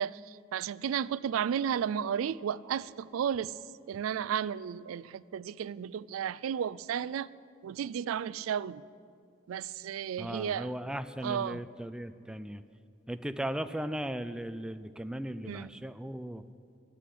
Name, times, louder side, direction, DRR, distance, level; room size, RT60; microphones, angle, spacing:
voice 1, 0.0-3.5 3.9-7.3 7.6-8.8 9.5-10.7 11.2-11.6 15.5-15.8, right 8 dB, 90° right, 0.3 m, -33 dB
voice 2, 10.2-12.6 13.1-16.4, right 1 dB, 5° right, 0.3 m, -37 dB
13.0 x 7.7 x 10.0 m
head